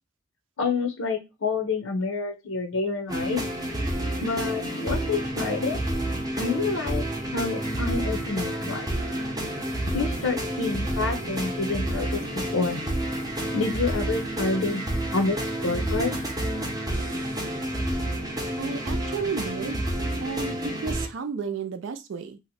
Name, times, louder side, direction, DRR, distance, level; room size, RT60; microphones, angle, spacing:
voice 1, 0.6-3.4 4.2-5.8 6.4-7.1 7.3-8.9 9.9-12.9 13.5-16.2, left 4 dB, 80° left, 5 dB, 0.7 m, -28 dB
sound 1, 3.1-21.1, right 1 dB, 20° right, 0.6 m, -29 dB
sound 2, 4.9-19.5, equal, 20° left, 0.5 m, -45 dB
voice 2, 18.6-19.9 20.2-22.4, right 5 dB, 65° right, 8 dB, 0.4 m, -32 dB
2.8 x 2.1 x 4.0 m, 0.24 s
head